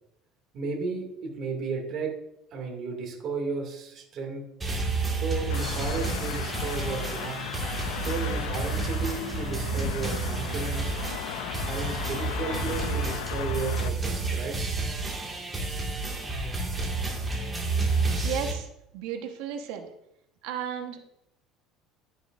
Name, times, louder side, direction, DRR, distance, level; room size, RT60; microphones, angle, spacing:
voice 1, 0.5-2.1 2.5-4.5 5.1-7.5 8.0-10.9 11.6-14.6, right 4 dB, 40° right, 0 dB, 2.3 m, -34 dB
sound 1, 4.6-18.5, right 3 dB, 15° right, 2.0 m, -30 dB
sound 2, 5.5-13.9, left 13 dB, 80° left, 0.4 m, -37 dB
voice 2, 18.2-18.7 18.9-19.9 20.4-21.0, right 9 dB, 75° right, 5 dB, 1.2 m, -33 dB
11.5 x 9.3 x 2.6 m, 0.82 s
cardioid pair, 155°, 0 cm